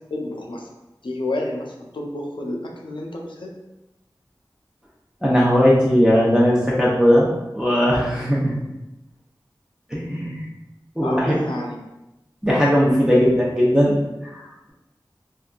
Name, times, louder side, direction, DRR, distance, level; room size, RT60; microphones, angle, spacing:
voice 1, 0.1-0.7 1.0-3.6 11.0-11.8 13.1-13.2, left 1 dB, 85° left, 0 dB, 0.5 m, -30 dB
voice 2, 5.2-8.6 9.9-10.5 11.0-11.4 12.4-14.0 14.2-14.4, equal, 10° right, -7 dB, 0.7 m, -18 dB
3.3 x 2.5 x 2.3 m, 0.95 s
wide cardioid pair, 50°, 8 cm